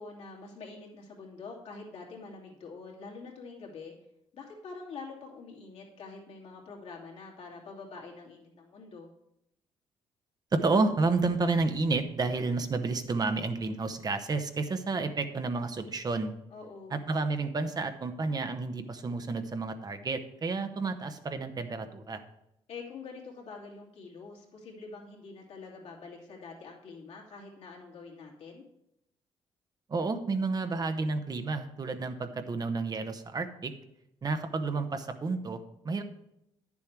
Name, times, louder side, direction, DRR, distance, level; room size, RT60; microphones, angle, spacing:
voice 1, 0.0-3.9 4.3-9.1 16.5-17.0 22.7-28.6, left 4 dB, 70° left, -2 dB, 2.6 m, -45 dB
voice 2, 10.5-16.3 16.9-22.2 29.9-33.7 34.2-36.0, right 3 dB, 35° right, 8 dB, 1.0 m, -30 dB
9.8 x 7.1 x 4.7 m, 0.81 s
cardioid pair, 80°, 11 cm